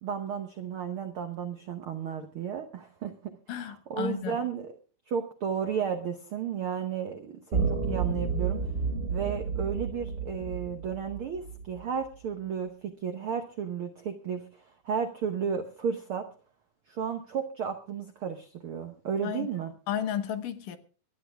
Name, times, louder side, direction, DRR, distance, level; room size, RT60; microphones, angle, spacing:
voice 1, 0.0-4.7 5.1-8.7 9.1-16.3 16.9-19.7, right 7 dB, 75° right, 1.2 m, -33 dB
voice 2, 3.5-4.4 19.2-19.5 19.9-20.8, left 9 dB, 75° left, 2.7 m, -33 dB
sound 1, 7.5-11.8, right 5 dB, 20° right, 2.1 m, -31 dB
24.0 x 9.8 x 3.5 m
omnidirectional pair, 3.9 m